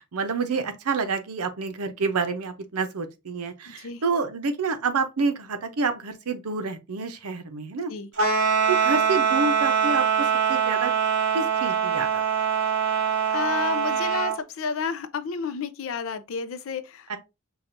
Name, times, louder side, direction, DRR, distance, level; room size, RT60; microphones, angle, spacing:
voice 1, 0.0-7.9 8.7-10.9 11.3-12.2 17.1-17.2, right 4 dB, 85° right, 0.7 m, -28 dB
voice 2, 3.7-4.0 7.9-8.1 12.9-13.0 13.3-17.2, left 5 dB, 65° left, 0.4 m, -31 dB
sound 1, 8.1-14.4, right 7 dB, 50° right, 1.7 m, -23 dB
5.9 x 2.3 x 2.6 m
head